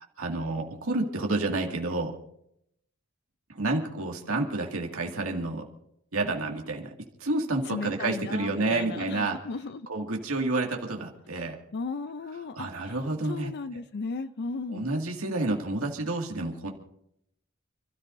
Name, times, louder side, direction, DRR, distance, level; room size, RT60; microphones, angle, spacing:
voice 1, 0.2-2.1 3.5-5.6 6.1-6.9 7.2-9.4 9.9-11.6 12.6-13.5 14.7-16.7, right 2 dB, 85° right, 1 dB, 2.1 m, -29 dB
voice 2, 7.7-9.9 11.4-11.5 11.7-14.9, left 4 dB, 50° left, 12 dB, 0.5 m, -36 dB
29.5 x 13.5 x 2.6 m, 0.76 s
head